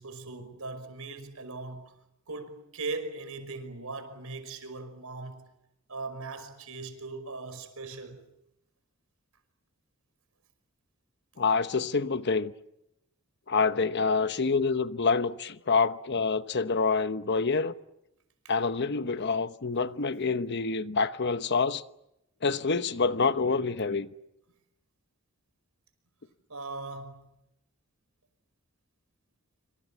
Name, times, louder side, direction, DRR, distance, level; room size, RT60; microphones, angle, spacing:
voice 1, 0.0-1.9 2.3-5.4 5.9-8.2 26.5-27.3, right 3 dB, 75° right, 5.3 m, -39 dB
voice 2, 11.4-12.5 13.5-17.7 18.5-21.8 22.4-24.1, left 4 dB, 50° left, 1.0 m, -27 dB
26.5 x 26.0 x 7.4 m
head